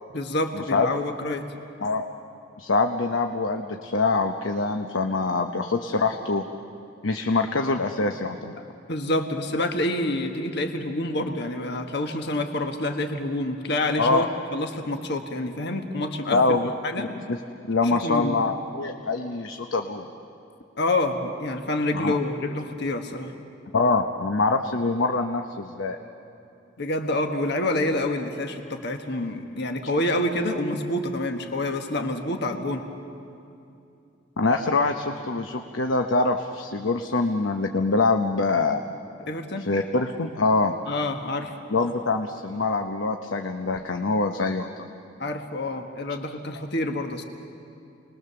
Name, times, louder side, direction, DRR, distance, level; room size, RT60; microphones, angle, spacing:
voice 1, 0.1-1.4 8.6-16.6 16.8-17.1 17.8-18.5 20.8-23.3 26.8-32.9 39.3-39.7 40.9-41.5 45.2-47.2, left 1 dB, 60° left, 5 dB, 1.5 m, -27 dB
voice 2, 2.6-6.4 7.0-8.5 14.0-14.3 16.3-16.7 17.0-17.4 17.7-20.1 21.9-22.2 23.7-26.0 34.4-38.8 39.7-40.7 41.7-44.9, left 3 dB, 90° left, 5 dB, 0.9 m, -24 dB
29.5 x 21.0 x 6.9 m, 2.7 s
head